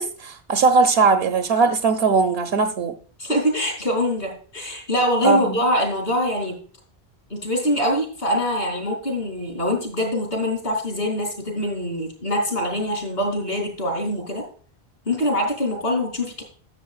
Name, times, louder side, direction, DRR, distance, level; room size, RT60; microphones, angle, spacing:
voice 1, 0.0-2.9 5.2-5.6, right 4 dB, 75° right, 0.9 m, -19 dB
voice 2, 3.2-6.6 7.3-14.4 15.1-16.4, equal, 65° left, 3.2 m, -24 dB
12.5 x 7.0 x 2.4 m
omnidirectional pair, 1.1 m